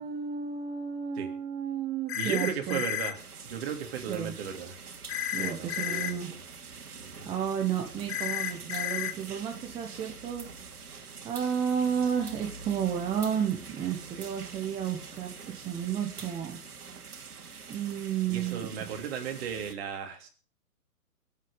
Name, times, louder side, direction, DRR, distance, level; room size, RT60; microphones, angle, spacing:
voice 1, 0.0-2.8 4.1-4.3 5.3-6.3 7.2-16.6 17.7-18.7, right 8 dB, 10° right, 2 dB, 1.2 m, -32 dB
sound 1, 2.1-3.1 5.1-6.1 8.1-9.1, left 10 dB, 45° left, 1.5 m, -32 dB
voice 2, 2.1-4.8 5.3-6.2 7.0-7.3 18.3-20.3, right 7 dB, 40° right, 4 dB, 3.2 m, -36 dB
sound 2, 3.1-19.7, right 5 dB, 80° right, 2.6 m, -45 dB
23.0 x 8.2 x 5.4 m, 0.40 s
hypercardioid pair, 145°, 45 cm